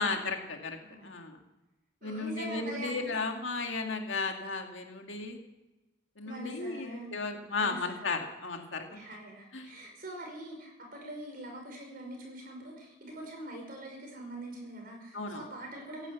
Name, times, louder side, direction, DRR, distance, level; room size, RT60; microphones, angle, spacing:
voice 1, 0.0-1.4 2.0-5.4 6.2-9.0 9.5-9.8 15.1-15.5, left 3 dB, 65° left, 3 dB, 2.1 m, -35 dB
voice 2, 0.8-1.1 2.0-3.0 6.2-7.1 7.6-7.9 8.9-16.1, right 1 dB, 45° right, 1 dB, 5.6 m, -43 dB
16.5 x 10.5 x 8.2 m, 1.0 s
head